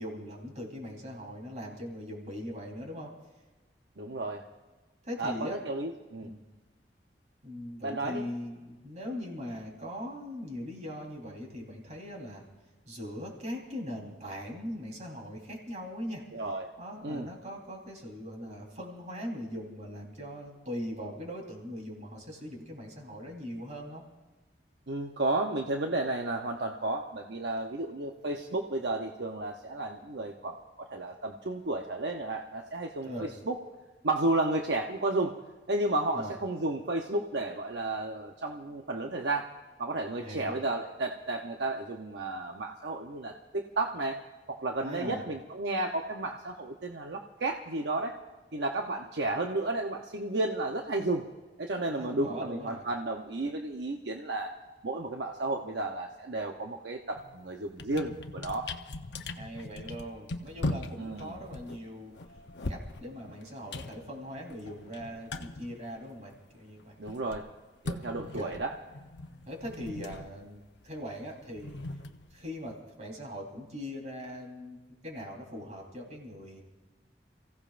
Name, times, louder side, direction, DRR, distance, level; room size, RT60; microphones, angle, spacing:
voice 1, 0.0-3.1 5.0-5.6 6.2-6.4 7.4-12.4 12.9-16.2 16.8-24.0 33.0-33.3 36.1-36.3 40.2-40.5 44.8-45.2 51.9-52.8 59.4-62.1 62.7-67.0 68.1-68.5 69.5-71.8 72.3-74.8 75.0-76.6, equal, 40° right, -1 dB, 3.8 m, -40 dB
voice 2, 4.0-4.4 5.2-6.3 7.8-8.2 16.3-16.7 17.0-17.3 24.9-30.6 30.9-33.6 34.0-35.4 35.7-39.5 39.8-44.2 44.5-48.2 48.5-51.3 51.6-54.5 54.8-58.7 61.0-61.4 67.0-67.4 67.8-68.7, right 2 dB, 70° right, 2 dB, 0.8 m, -32 dB
sound 1, 57.2-57.4 57.7-66.5 66.8-72.7, left 2 dB, 75° left, 0.8 m, -40 dB
29.0 x 16.0 x 2.5 m, 1.2 s
head